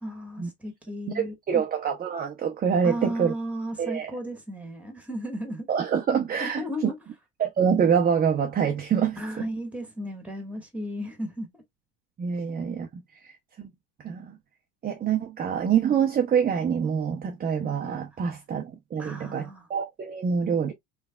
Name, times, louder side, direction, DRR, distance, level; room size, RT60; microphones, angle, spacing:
voice 1, 0.0-1.6 2.8-5.7 6.4-6.9 9.2-11.5 19.0-19.7, equal, 5° right, 1.4 m, -34 dB
voice 2, 1.1-3.3 3.8-4.1 5.7-6.9 7.4-9.4 12.2-13.3 13.6-13.7 14.0-14.4 14.8-20.7, right 7 dB, 20° right, 0.6 m, -26 dB
3.3 x 3.2 x 2.2 m
supercardioid pair, 100°, 41 cm